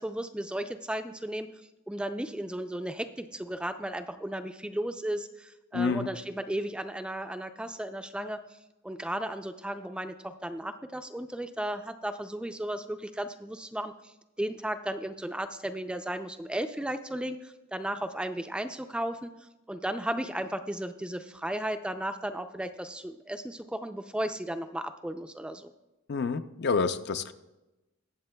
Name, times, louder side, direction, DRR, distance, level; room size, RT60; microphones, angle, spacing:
voice 1, 0.0-1.5 1.9-8.4 8.8-19.3 19.7-25.7, right 1 dB, 5° right, 8 dB, 0.3 m, -35 dB
voice 2, 5.7-6.1 26.1-27.3, left 4 dB, 55° left, 10 dB, 0.5 m, -28 dB
20.5 x 7.5 x 2.2 m, 1.0 s
head